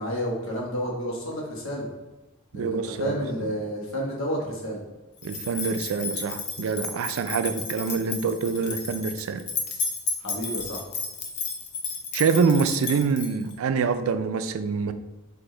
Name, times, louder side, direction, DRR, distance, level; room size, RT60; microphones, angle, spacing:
voice 1, 0.0-1.9 2.5-4.8 10.2-10.8, equal, 80° left, -2 dB, 1.2 m, -30 dB
voice 2, 2.5-3.2 5.2-9.5 12.1-14.9, right 5 dB, 85° right, 10 dB, 0.4 m, -25 dB
sound 1, 5.2-13.5, left 4 dB, 55° left, 0.6 m, -33 dB
4.8 x 2.6 x 3.7 m, 1.1 s
head